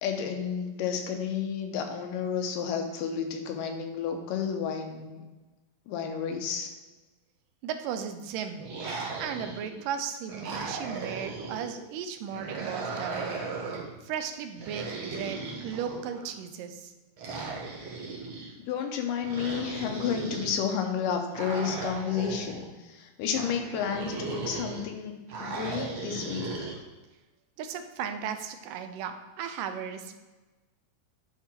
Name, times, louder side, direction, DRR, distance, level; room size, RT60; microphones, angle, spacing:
voice 1, 0.0-5.2 5.9-6.7 18.7-25.1 25.4-26.7, left 7 dB, 90° left, 4 dB, 2.5 m, -31 dB
voice 2, 7.6-8.7 9.0-13.4 14.0-16.9 27.6-30.2, right 8 dB, 85° right, 8 dB, 2.2 m, -36 dB
sound 1, 8.6-9.8 10.3-11.7 12.3-13.9 14.6-16.3 17.2-18.5 19.2-20.6 21.3-22.6 23.3-24.8 25.3-26.8, right 4 dB, 55° right, 1.5 m, -37 dB
9.8 x 3.7 x 4.3 m, 1.2 s
omnidirectional pair, 3.8 m